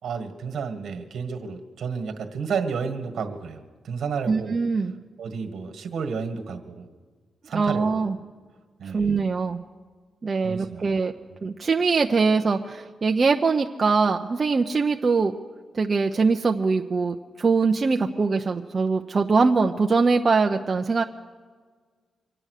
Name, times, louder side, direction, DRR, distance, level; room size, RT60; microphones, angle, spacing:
voice 1, 0.0-4.6 5.2-6.8 7.4-8.0 8.8-9.2 10.4-10.8 11.3-11.4, right 5 dB, 75° right, 6 dB, 1.7 m, -31 dB
voice 2, 4.3-5.0 7.5-8.1 8.9-9.6 10.2-11.1 11.4-15.3 15.7-21.0, right 4 dB, 40° right, 3 dB, 0.6 m, -22 dB
25.0 x 8.8 x 6.6 m, 1.5 s
cardioid pair, 90°, 0 cm